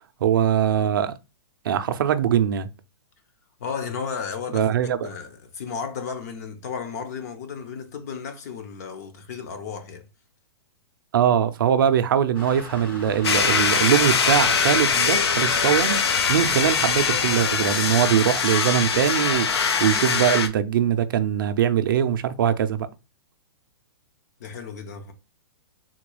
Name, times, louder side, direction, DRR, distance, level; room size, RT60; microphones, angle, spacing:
voice 1, 0.2-1.1 1.6-2.7 4.5-5.2 11.1-16.0 16.3-22.9, right 9 dB, 55° right, 0.4 m, -22 dB
voice 2, 3.6-10.1 24.4-25.1, left 6 dB, 40° left, 0.6 m, -34 dB
sound 1, 12.3-18.4, left 1 dB, 60° left, 1.3 m, -39 dB
sound 2, 13.2-20.5, left 6 dB, 85° left, 0.6 m, -22 dB
3.7 x 2.3 x 3.0 m
hypercardioid pair, 170°, 13 cm